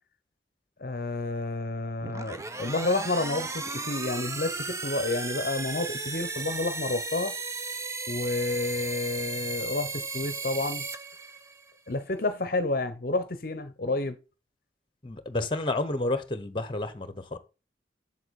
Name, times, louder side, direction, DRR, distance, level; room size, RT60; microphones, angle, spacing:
voice 1, 0.8-7.3 8.1-10.8 11.9-14.2 15.4-15.5, left 2 dB, 55° left, 0.8 m, -30 dB
sound 1, 2.0-11.7, right 3 dB, 15° right, 0.6 m, -35 dB
voice 2, 15.0-17.4, left 2 dB, 30° left, 1.0 m, -30 dB
7.9 x 7.3 x 4.1 m
head